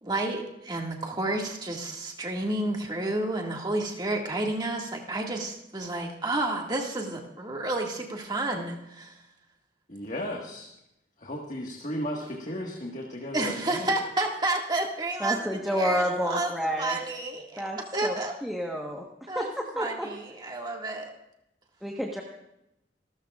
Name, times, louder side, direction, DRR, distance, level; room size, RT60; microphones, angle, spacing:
voice 1, 0.0-9.1 13.3-16.5 16.8-17.7 17.9-18.3 19.3-19.5 19.8-21.1, right 2 dB, 25° right, 0 dB, 2.0 m, -30 dB
voice 2, 9.9-10.7 11.2-13.9, equal, 45° left, 0 dB, 1.7 m, -35 dB
voice 3, 15.2-17.0 17.6-18.1 18.4-19.1 19.3-20.1 21.8-22.2, equal, ahead, -1 dB, 1.3 m, -29 dB
27.5 x 13.5 x 2.5 m, 0.86 s
head